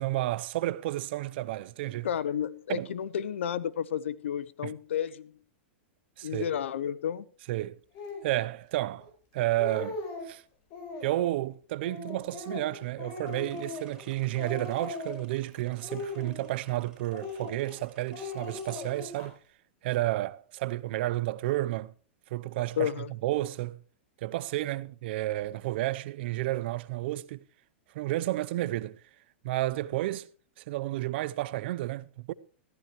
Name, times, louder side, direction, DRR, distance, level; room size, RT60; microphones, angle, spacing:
voice 1, 0.0-2.1 2.7-2.9 4.6-4.7 6.2-6.5 7.5-7.8 8.2-9.1 9.3-10.0 10.2-10.4 11.0-19.3 19.8-21.9 22.3-22.9 23.2-23.8 24.2-27.4 27.9-29.0 29.4-30.3 30.6-32.3, right 16 dB, 60° right, 0.7 m, -31 dB
voice 2, 2.0-5.3 6.2-7.3 22.8-23.1, left 9 dB, 80° left, 0.7 m, -31 dB
Speech, 7.9-8.3 9.0-9.1 9.4-10.3 10.7-11.3 11.8-14.1 14.4-15.3 15.8-16.7 17.1-17.8 18.1-19.3, left 3 dB, 45° left, 5.0 m, -39 dB
sound 1, 13.3-18.9, right 4 dB, 10° right, 5.5 m, -59 dB
14.0 x 14.0 x 3.1 m
hypercardioid pair, 125°, 6 cm